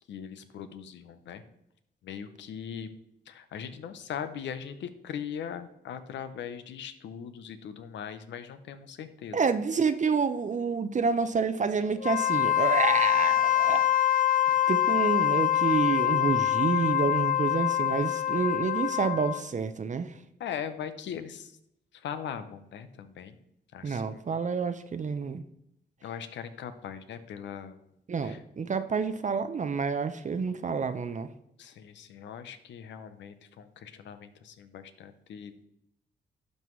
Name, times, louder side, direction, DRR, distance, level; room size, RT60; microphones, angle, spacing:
voice 1, 0.0-1.4 2.0-2.9 3.3-9.4 20.4-21.6 21.9-23.4 23.7-24.2 26.0-27.8 28.2-28.4 31.6-35.6, left 8 dB, 85° left, 11 dB, 0.7 m, -40 dB
voice 2, 9.3-13.8 14.7-20.2 23.8-25.4 28.1-31.3, right 5 dB, 45° right, 10 dB, 0.6 m, -28 dB
Wind instrument woodwind instrument, 12.0-19.5, left 11 dB, 50° left, 0.4 m, -25 dB
11.5 x 5.4 x 3.1 m, 0.79 s
cardioid pair, 60°, 18 cm